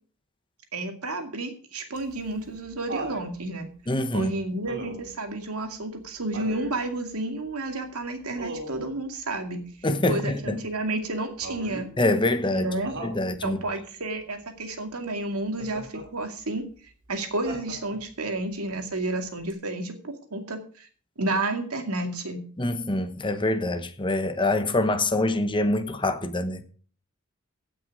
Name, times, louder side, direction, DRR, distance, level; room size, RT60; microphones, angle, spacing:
voice 1, 0.7-3.7 4.1-9.6 10.1-11.9 12.5-12.9 13.4-16.7 17.1-20.9 21.2-22.4, right 2 dB, 85° right, 2.2 m, -31 dB
Laughter, 2.0-3.3 4.7-5.2 6.3-6.8 8.4-8.9 11.4-11.9 12.8-13.2 15.6-16.1 17.5-18.1 19.5-19.6, right 2 dB, 60° right, 2.8 m, -37 dB
voice 2, 3.9-4.3 9.8-10.6 12.0-12.7 13.0-13.6 22.6-26.6, left 2 dB, 20° left, 1.0 m, -25 dB
16.0 x 6.2 x 5.3 m
head